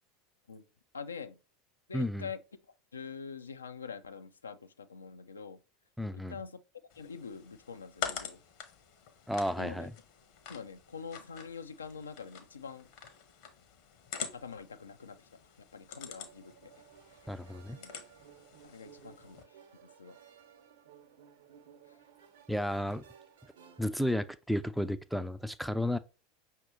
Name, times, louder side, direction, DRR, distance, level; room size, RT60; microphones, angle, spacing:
voice 1, 0.9-1.4 1.9-2.4 2.9-5.6 6.1-6.6 7.0-8.4 9.6-9.9 10.5-12.9 14.3-16.7 17.2-17.4 17.7-17.9 18.6-19.6 20.0-20.2 21.9-22.0, left 5 dB, 75° left, 0.4 m, -45 dB
voice 2, 1.9-2.2 6.0-6.3 9.3-9.9 17.3-17.8 22.5-23.0 23.8-26.0, equal, ahead, 0.4 m, -32 dB
sound 1, 6.9-19.4, left 8 dB, 50° left, 0.8 m, -46 dB
sound 2, 15.9-24.2, right 8 dB, 65° right, 0.9 m, -58 dB
5.8 x 2.8 x 3.2 m
figure-of-eight pair, 80°, 0 cm